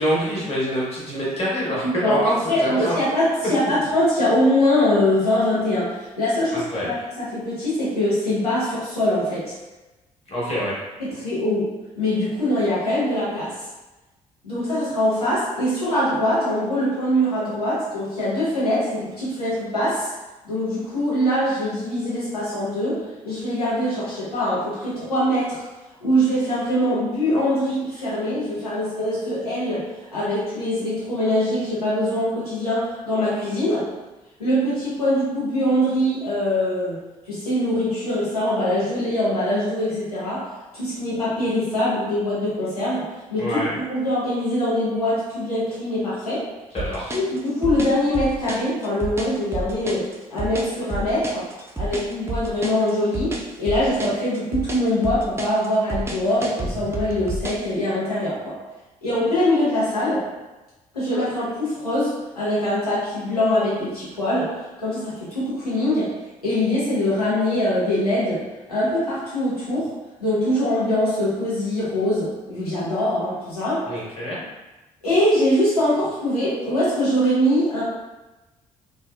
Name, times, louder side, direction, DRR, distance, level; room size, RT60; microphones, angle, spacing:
voice 1, 0.0-3.2 3.6-3.7 6.5-6.9 10.3-10.8 43.4-43.7 46.7-47.1 73.9-74.4, equal, 30° left, -6 dB, 1.2 m, -25 dB
voice 2, 1.8-9.5 11.0-13.6 14.4-20.1 20.4-25.6 26.0-33.9 34.4-37.0 37.3-43.6 43.9-46.5 47.1-51.5 51.8-58.6 59.0-60.3 60.9-66.1 66.4-68.4 68.7-69.9 70.2-73.9 75.0-77.8, left 1 dB, 85° left, -9 dB, 0.8 m, -23 dB
sound 1, 46.8-57.7, right 2 dB, 15° right, 0.4 m, -30 dB
3.3 x 2.1 x 2.3 m, 1.1 s
figure-of-eight pair, 45°, 19 cm